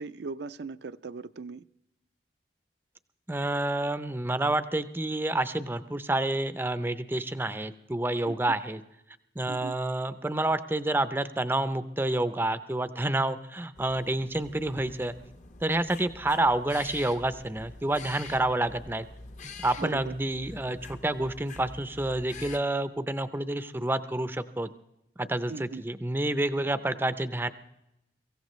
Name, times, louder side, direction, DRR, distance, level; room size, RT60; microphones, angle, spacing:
voice 1, 0.0-1.6 8.2-8.5 9.5-9.7 19.8-20.1 25.5-25.8, right 4 dB, 70° right, 11 dB, 0.5 m, -39 dB
voice 2, 3.3-8.8 9.4-15.2 15.6-19.0 19.4-24.7 25.2-27.5, right 1 dB, 10° right, 12 dB, 0.5 m, -29 dB
sound 1, 13.7-22.6, left 3 dB, 40° left, 0.8 m, -46 dB
24.0 x 15.5 x 3.1 m, 0.85 s
head